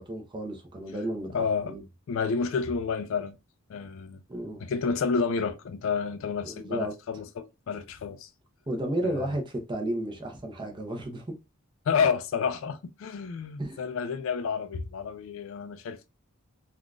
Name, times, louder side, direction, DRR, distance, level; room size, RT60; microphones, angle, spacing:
voice 1, 0.0-1.8 4.3-4.7 6.4-6.9 8.7-11.2 13.6-13.8, right 1 dB, 20° right, 0.7 m, -33 dB
voice 2, 1.3-1.7 2.1-3.3 3.7-4.2 4.6-8.3 9.0-9.3 11.9-16.1, left 5 dB, 65° left, 0.3 m, -30 dB
3.6 x 2.3 x 2.3 m
head